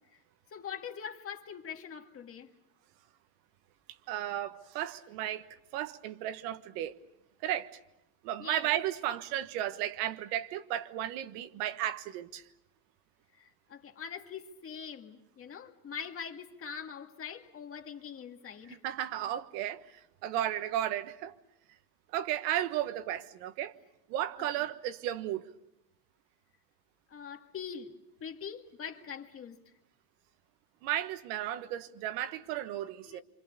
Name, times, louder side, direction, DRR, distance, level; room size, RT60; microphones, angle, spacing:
voice 1, 0.5-2.5 8.4-8.7 13.4-18.8 24.6-24.7 27.1-27.9 28.2-29.6 32.3-32.7 33.0-33.2, left 7 dB, 30° left, 1.9 m, -43 dB
voice 2, 4.1-6.9 7.4-7.8 8.2-12.4 18.8-21.3 22.1-23.7 24.1-25.5 30.8-33.2, right 12 dB, 90° right, 1.5 m, -34 dB
27.5 x 25.5 x 6.9 m
cardioid pair, 155°, 46 cm